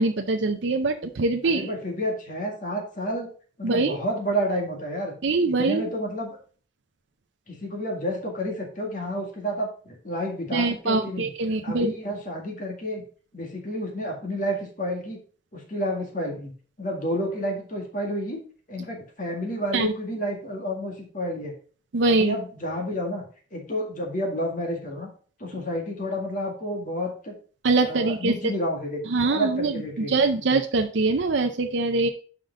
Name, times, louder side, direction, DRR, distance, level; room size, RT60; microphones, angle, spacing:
voice 1, 0.0-1.7 3.6-4.0 5.2-5.9 10.5-11.9 19.7-19.9 21.9-22.4 27.6-28.3 29.1-32.1, right 3 dB, 65° right, 5 dB, 0.6 m, -23 dB
voice 2, 1.4-3.3 3.6-5.1 5.5-6.4 7.5-11.3 11.6-13.0 13.3-15.2 15.5-16.5 16.8-18.4 18.7-21.5 22.1-23.2 23.5-25.1 25.4-27.4 27.8-30.1, equal, 40° left, 1 dB, 2.0 m, -30 dB
5.9 x 5.1 x 5.2 m, 0.42 s
head